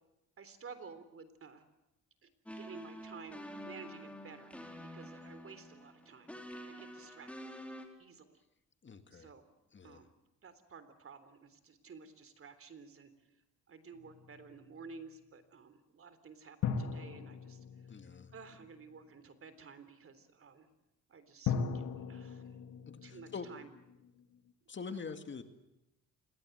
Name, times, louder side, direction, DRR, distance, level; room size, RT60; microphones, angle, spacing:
voice 1, 0.4-1.7 2.2-4.5 4.9-6.3 6.6-7.5 8.0-8.4 9.1-9.5 9.8-10.1 10.4-13.3 13.7-18.0 18.3-20.7 21.1-22.6 23.0-23.7 25.0-25.2, right 5 dB, 45° right, 12 dB, 3.6 m, -53 dB
sound 1, 2.5-7.9, equal, 5° left, 4.5 m, -48 dB
voice 2, 8.8-9.3 9.7-10.0 17.9-18.3 22.9-23.5 24.7-25.4, left 5 dB, 40° left, 8 dB, 2.2 m, -45 dB
sound 2, 13.9-14.9 16.6-19.0 21.5-24.5, left 6 dB, 75° left, 2.8 m, -40 dB
28.0 x 21.5 x 8.1 m, 0.91 s
cardioid pair, 90°, 30 cm